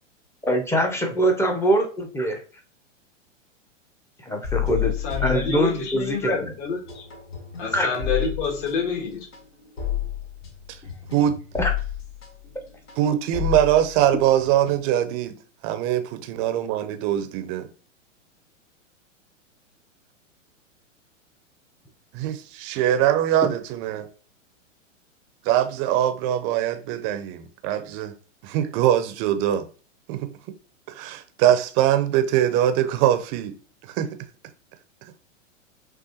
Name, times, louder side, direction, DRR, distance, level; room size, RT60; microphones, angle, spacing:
voice 1, 0.4-2.4 4.2-4.9 5.2-6.5 7.7-7.9 11.5-11.7, right 1 dB, 5° left, 0.7 m, -23 dB
sound 1, 4.4-6.2 6.5-15.1, left 11 dB, 75° left, 2.3 m, -31 dB
voice 2, 5.0-7.0 7.6-9.3, left 4 dB, 45° left, 1.5 m, -27 dB
voice 3, 13.0-15.3 15.6-17.7 22.1-24.1 25.4-28.1 28.4-29.7 30.1-30.3 31.0-33.5 34.0-34.2, right 11 dB, 35° right, 0.6 m, -22 dB
6.1 x 2.4 x 2.8 m
hypercardioid pair, 115°, 38 cm